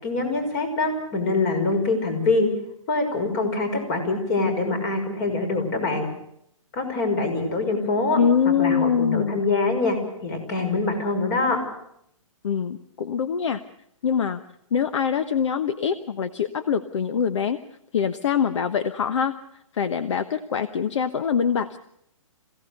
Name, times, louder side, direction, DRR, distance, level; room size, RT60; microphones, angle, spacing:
voice 1, 0.0-2.5 2.9-6.1 6.7-8.2 8.4-11.6, left 3 dB, 35° left, 7 dB, 5.8 m, -24 dB
voice 2, 8.2-9.5 12.4-13.6 14.0-14.4 14.7-17.6 17.9-19.3 19.7-21.8, left 7 dB, 60° left, 11 dB, 1.1 m, -24 dB
26.5 x 17.0 x 6.7 m, 0.73 s
hypercardioid pair, 150°, 17 cm